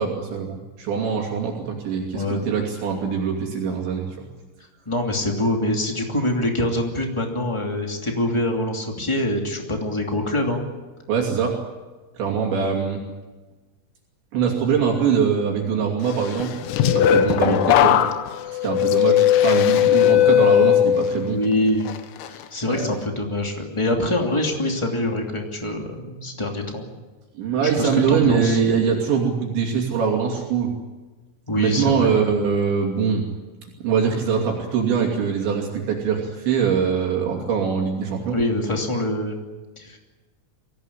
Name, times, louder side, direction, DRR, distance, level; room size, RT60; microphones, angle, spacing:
voice 1, 0.0-4.1 11.1-11.5 12.2-13.0 14.3-16.5 16.9-18.0 18.6-21.4 22.7-22.9 27.4-30.7 31.6-33.2 33.8-38.4, right 6 dB, 65° right, 0 dB, 4.9 m, -23 dB
voice 2, 2.1-2.5 4.8-10.6 14.4-14.5 17.3-17.6 18.4-18.6 21.2-21.9 22.3-26.9 27.8-28.6 31.5-32.1 38.3-39.4 39.7-40.0, left 1 dB, 20° left, 2 dB, 0.7 m, -25 dB
sound 1, 16.4-21.4 21.9-22.3, left 11 dB, 90° left, 4.0 m, -18 dB
24.0 x 17.0 x 10.0 m, 1.2 s
omnidirectional pair, 5.9 m